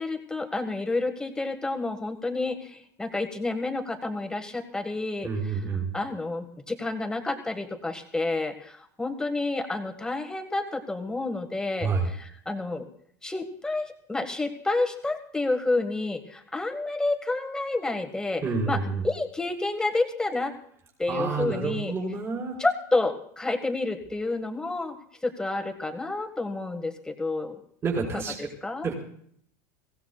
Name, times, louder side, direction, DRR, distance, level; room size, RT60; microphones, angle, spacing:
voice 1, 0.0-5.3 5.9-11.9 12.2-12.8 13.2-18.8 19.0-20.5 21.0-21.9 22.6-25.0 25.2-27.6 28.1-28.9, left 2 dB, 5° left, 4 dB, 1.7 m, -29 dB
voice 2, 5.2-5.9 11.8-12.1 18.4-19.0 21.1-22.6 27.8-28.5 28.8-28.9, right 4 dB, 30° right, -3 dB, 5.4 m, -28 dB
23.0 x 17.0 x 2.4 m, 0.63 s
supercardioid pair, 125°, 10 cm